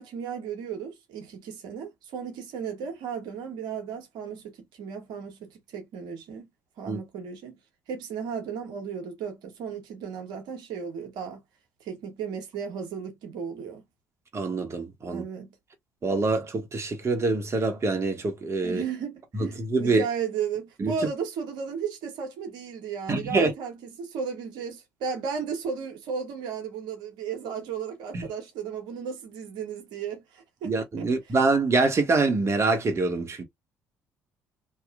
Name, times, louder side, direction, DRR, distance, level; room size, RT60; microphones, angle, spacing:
voice 1, 0.0-6.5 6.8-7.6 7.9-11.4 11.8-13.8 15.0-15.5 18.6-31.1, right 6 dB, 70° right, 1.2 m, -35 dB
voice 2, 14.3-15.2 16.0-18.8 19.3-20.0 20.8-20.9 23.1-23.5 28.1-28.2 30.6-33.4, right 3 dB, 35° right, 1.2 m, -25 dB
2.9 x 2.9 x 2.5 m
hypercardioid pair, 55°, 8 cm